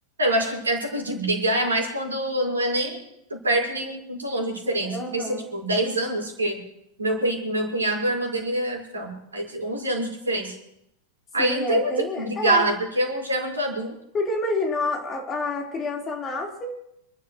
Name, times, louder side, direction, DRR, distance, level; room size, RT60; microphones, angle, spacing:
voice 1, 0.2-3.0 3.3-6.6 7.0-10.6 11.3-14.0, right 1 dB, 75° right, 0 dB, 5.3 m, -25 dB
voice 2, 4.8-5.5 11.4-12.6 14.1-16.8, left 2 dB, 25° left, 0 dB, 4.3 m, -28 dB
28.5 x 12.5 x 3.2 m, 0.79 s
figure-of-eight pair, 90°, 0 cm